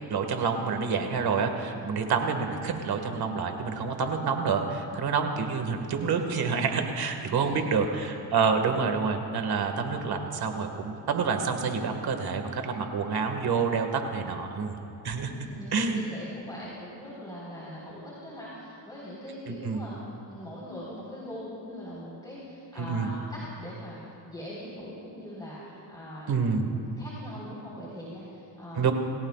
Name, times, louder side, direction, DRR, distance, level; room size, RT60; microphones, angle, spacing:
voice 1, 0.1-14.8 15.0-15.3 15.7-16.1 19.5-19.8 22.8-23.1 26.3-26.8 28.8-28.9, right 5 dB, 55° right, 5 dB, 1.9 m, -28 dB
voice 2, 1.7-2.2 7.2-7.7 15.3-20.0 20.3-26.3 26.7-28.9, equal, 10° left, -7 dB, 4.3 m, -42 dB
28.0 x 17.0 x 2.5 m, 2.7 s
cardioid pair, 95°, 46 cm